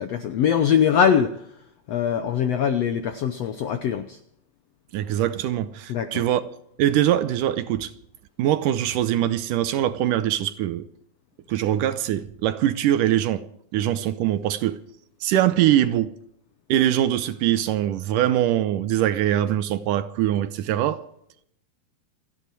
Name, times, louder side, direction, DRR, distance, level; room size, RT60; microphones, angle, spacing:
voice 1, 0.0-1.4 1.9-4.2 5.9-6.2, left 8 dB, 75° left, 1.5 m, -22 dB
voice 2, 4.9-6.4 6.8-7.9 8.4-10.9 11.5-13.4 13.7-14.8 15.2-16.1 16.7-21.0, right 12 dB, 75° right, 2.2 m, -22 dB
28.5 x 9.8 x 4.6 m
omnidirectional pair, 4.1 m